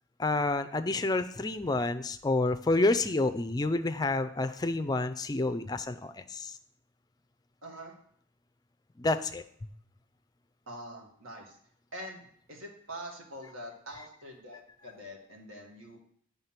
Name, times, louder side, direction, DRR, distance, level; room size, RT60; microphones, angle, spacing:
voice 1, 0.2-6.6 9.0-9.7, left 2 dB, 20° left, 10 dB, 0.3 m, -29 dB
voice 2, 7.6-7.9 10.7-11.6 11.9-16.0, equal, 85° right, 0 dB, 1.9 m, -45 dB
9.4 x 3.7 x 5.7 m, 0.63 s
head